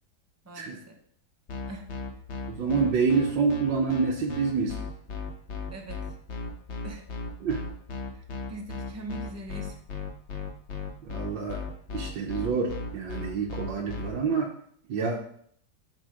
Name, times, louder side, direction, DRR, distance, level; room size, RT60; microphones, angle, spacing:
voice 1, 0.4-1.0 1.7-1.9 5.7-6.0 6.8-7.1 8.1-8.2 8.5-9.8, right 1 dB, 15° right, 2 dB, 0.6 m, -41 dB
sound 1, 1.5-14.1, left 4 dB, 45° left, 1.0 m, -35 dB
voice 2, 2.5-4.8 7.4-7.6 11.0-11.6 11.9-14.5 14.9-15.2, right 5 dB, 85° right, -2 dB, 1.7 m, -27 dB
9.3 x 3.8 x 5.0 m, 0.64 s
omnidirectional pair, 2.0 m